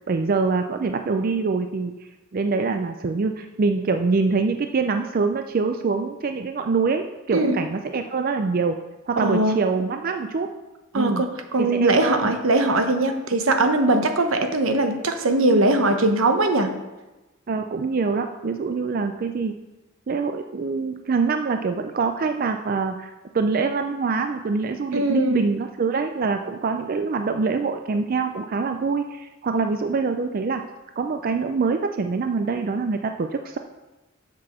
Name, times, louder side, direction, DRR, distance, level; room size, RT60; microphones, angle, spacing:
voice 1, 0.1-1.9 2.3-8.8 9.1-10.5 10.9-11.2 11.6-12.2 17.5-19.6 20.1-30.6 31.0-33.6, right 4 dB, 45° right, 6 dB, 0.4 m, -24 dB
voice 2, 9.2-9.6 10.9-11.3 11.5-16.7 24.9-25.5, right 2 dB, 75° right, 6 dB, 0.9 m, -20 dB
7.5 x 6.0 x 6.1 m, 1.1 s
head